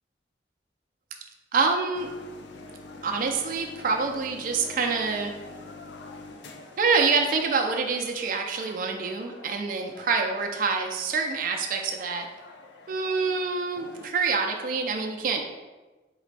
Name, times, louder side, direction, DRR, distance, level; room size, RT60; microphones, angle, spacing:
voice 1, 1.5-2.1 3.0-5.3 6.8-12.3 12.9-15.5, right 4 dB, 50° right, 3 dB, 0.4 m, -26 dB
sound 1, 1.9-14.1, left 3 dB, 80° left, 0.5 m, -46 dB
4.0 x 3.8 x 3.3 m, 1.2 s
head